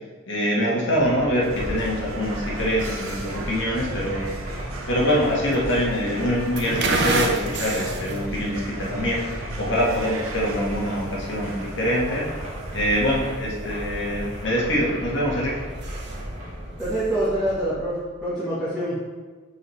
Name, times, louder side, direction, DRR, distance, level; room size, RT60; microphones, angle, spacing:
voice 1, 0.3-4.3 4.9-9.2 9.6-12.3 12.7-15.6, equal, 60° left, -4 dB, 1.5 m, -24 dB
sound 1, 0.9-18.3, equal, 35° right, 1.8 m, -36 dB
sound 2, 1.4-13.2, right 3 dB, 90° right, 0.8 m, -39 dB
sound 3, 1.5-17.7, right 2 dB, 55° right, 0.7 m, -34 dB
voice 2, 16.8-19.0, right 1 dB, ahead, -12 dB, 1.5 m, -25 dB
7.6 x 4.7 x 3.3 m, 1.4 s
head